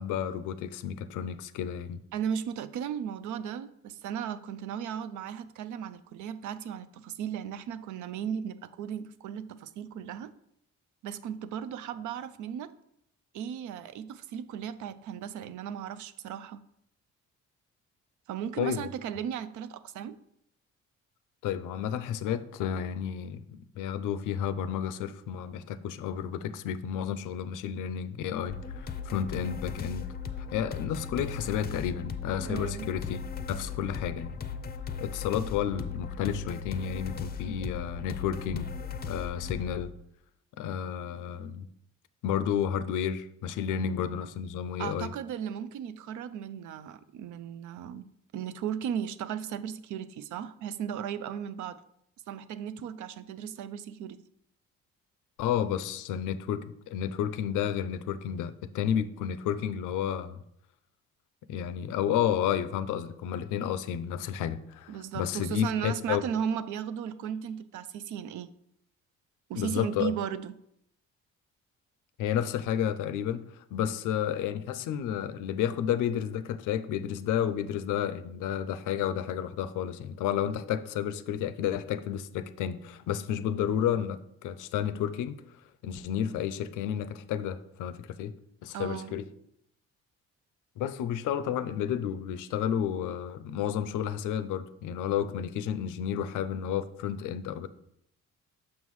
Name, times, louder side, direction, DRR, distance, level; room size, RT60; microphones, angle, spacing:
voice 1, 0.0-2.0 18.6-18.8 21.4-30.1 30.5-33.2 33.5-34.4 35.0-38.7 39.0-39.9 40.6-41.7 42.2-45.1 55.4-60.4 61.5-66.2 69.5-70.1 72.2-85.4 85.8-88.3 88.6-89.3 90.8-97.7, left 9 dB, 85° left, 0.5 m, -31 dB
voice 2, 2.1-10.3 11.0-12.7 13.3-16.6 18.3-20.2 32.4-32.9 44.8-48.1 48.3-51.8 52.3-54.2 64.9-68.5 69.5-70.5 88.7-89.1, right 8 dB, 75° right, 0.5 m, -36 dB
sound 1, 28.5-39.8, left 6 dB, 30° left, 0.5 m, -37 dB
6.1 x 5.5 x 3.1 m
cardioid pair, 90°, 30 cm